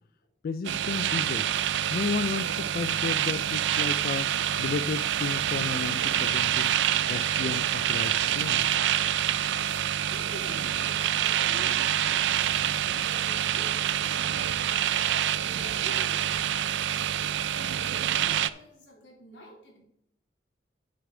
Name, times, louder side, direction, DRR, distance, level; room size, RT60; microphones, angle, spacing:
voice 1, 0.4-1.5 1.9-4.3 4.6-6.7 7.1-8.7, left 5 dB, 55° left, 11 dB, 0.3 m, -33 dB
sound 1, 0.6-18.5, right 10 dB, 75° right, 0.4 m, -27 dB
voice 2, 9.2-19.8, equal, 85° left, -2 dB, 3.2 m, -49 dB
8.1 x 8.0 x 3.8 m, 0.74 s
head